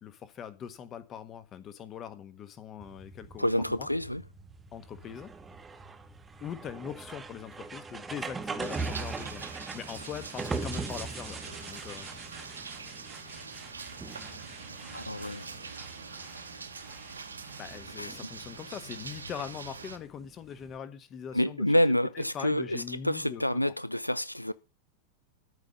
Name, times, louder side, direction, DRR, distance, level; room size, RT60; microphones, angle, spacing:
voice 1, 0.0-3.9 4.7-5.3 6.4-12.1 17.6-21.8 22.1-23.7, left 8 dB, 30° left, 1.4 m, -42 dB
sound 1, 2.8-20.8, right 4 dB, 15° right, 1.2 m, -42 dB
voice 2, 3.4-4.2 14.9-15.5 18.0-18.1 21.3-24.5, left 1 dB, 90° left, 0.5 m, -28 dB
sound 2, 8.6-20.0, right 4 dB, 75° right, 1.3 m, -44 dB
13.5 x 5.2 x 7.1 m
figure-of-eight pair, 90°, 0 cm